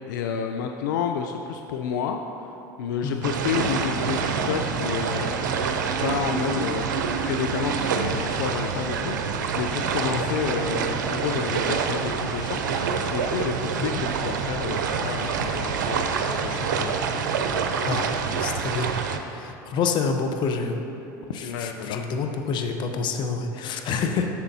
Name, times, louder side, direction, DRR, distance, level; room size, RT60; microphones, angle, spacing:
voice 1, 0.1-5.3 6.0-12.6 13.1-16.9 21.4-22.1, left 7 dB, 80° left, 5 dB, 0.4 m, -30 dB
sound 1, 3.2-19.2, right 5 dB, 90° right, 0.5 m, -26 dB
voice 2, 18.4-18.9 19.3-20.8 21.3-24.3, left 5 dB, 50° left, 5 dB, 0.8 m, -27 dB
11.5 x 7.0 x 2.7 m, 3.0 s
hypercardioid pair, 90°, 10 cm